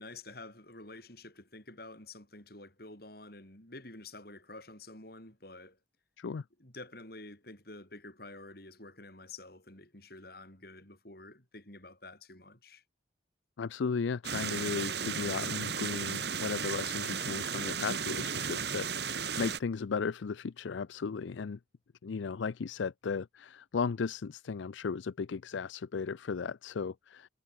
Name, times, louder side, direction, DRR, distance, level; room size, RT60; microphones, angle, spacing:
voice 1, 0.0-5.8 6.6-12.8, left 2 dB, 50° left, 5.9 m, -49 dB
voice 2, 13.6-21.6 22.0-27.3, left 5 dB, 75° left, 0.4 m, -35 dB
sound 1, 14.2-19.6, right 6 dB, 60° right, 2.4 m, -35 dB
head